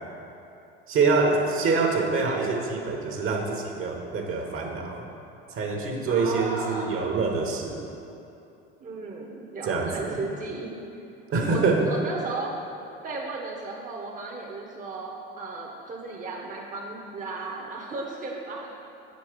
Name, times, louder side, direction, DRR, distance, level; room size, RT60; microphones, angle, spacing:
voice 1, 0.9-5.0 5.5-7.8 9.7-10.2 11.3-11.9, right 4 dB, 45° right, 1 dB, 1.3 m, -25 dB
voice 2, 6.1-7.1 8.8-10.7 11.5-12.7 13.0-18.8, right 3 dB, 25° right, -2 dB, 1.0 m, -35 dB
7.2 x 5.3 x 5.0 m, 2.7 s
hypercardioid pair, 75°, 29 cm